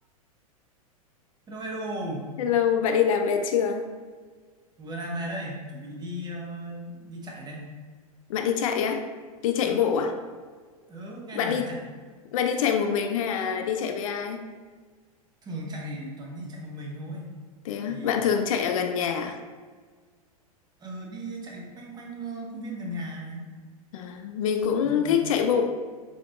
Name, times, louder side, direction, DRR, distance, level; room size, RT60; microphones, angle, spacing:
voice 1, 1.5-2.2 4.8-7.7 9.6-9.9 10.9-11.8 15.4-17.4 17.9-18.4 20.8-23.5 24.8-25.2, right 1 dB, 20° right, -1 dB, 0.8 m, -36 dB
voice 2, 2.4-3.9 8.3-9.0 9.4-10.1 11.3-11.7 12.3-14.4 17.6-19.4 23.9-25.7, left 7 dB, 65° left, 6 dB, 0.4 m, -25 dB
3.9 x 3.3 x 2.5 m, 1.5 s
hypercardioid pair, 100°, 19 cm